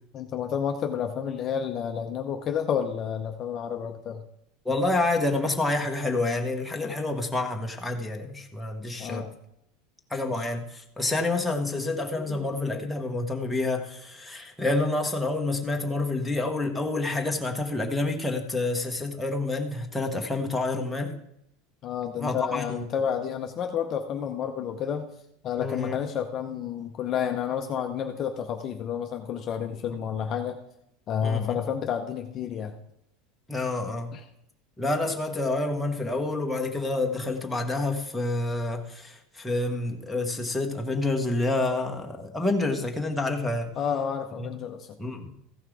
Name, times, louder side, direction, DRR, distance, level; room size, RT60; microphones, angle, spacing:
voice 1, 0.1-4.2 9.0-9.3 10.3-10.5 12.2-12.7 21.8-25.1 25.4-30.6 31.1-32.7 34.1-34.2 43.8-45.1, left 8 dB, 30° left, 5 dB, 0.7 m, -30 dB
voice 2, 4.6-9.2 10.1-21.1 22.2-22.8 25.6-26.0 31.2-31.6 33.5-34.1 34.8-43.7 44.4-44.5 45.0-45.3, left 2 dB, 5° left, 1 dB, 1.1 m, -28 dB
15.0 x 5.7 x 4.8 m, 0.77 s
supercardioid pair, 160°, 0 cm